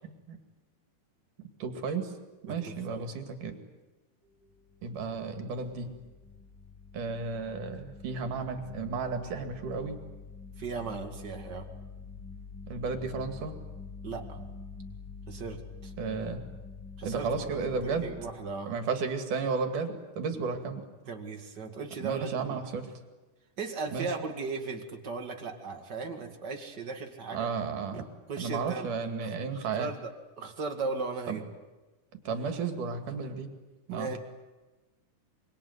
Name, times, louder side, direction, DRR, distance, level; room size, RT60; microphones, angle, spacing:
voice 1, 0.0-0.4 1.6-2.1 2.5-3.6 4.8-5.9 6.9-10.0 12.7-13.6 16.0-16.4 17.0-18.1 18.7-20.8 22.0-22.9 23.9-24.1 27.3-28.0 28.4-29.9 31.3-31.4 32.3-33.5 33.9-34.2, right 5 dB, 85° right, 6 dB, 3.9 m, -33 dB
voice 2, 2.4-3.1 10.6-11.7 14.0-14.5 15.3-15.9 17.0-18.7 21.1-22.6 23.6-27.5 27.9-28.9 29.2-30.1 30.4-31.4 33.9-34.2, right 4 dB, 35° right, 4 dB, 2.6 m, -37 dB
sound 1, 4.2-18.3, left 4 dB, 5° left, 3.6 m, -46 dB
25.5 x 23.0 x 9.5 m, 1.2 s
omnidirectional pair, 3.5 m